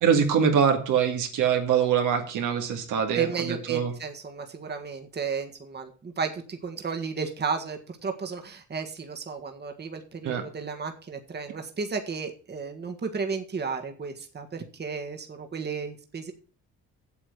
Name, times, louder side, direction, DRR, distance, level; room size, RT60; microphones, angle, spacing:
voice 1, 0.0-3.9 10.2-10.4, right 7 dB, 85° right, 3 dB, 2.4 m, -23 dB
voice 2, 3.1-16.3, right 5 dB, 35° right, 4 dB, 1.7 m, -33 dB
8.3 x 7.6 x 6.7 m, 0.40 s
cardioid pair, 90°, 30 cm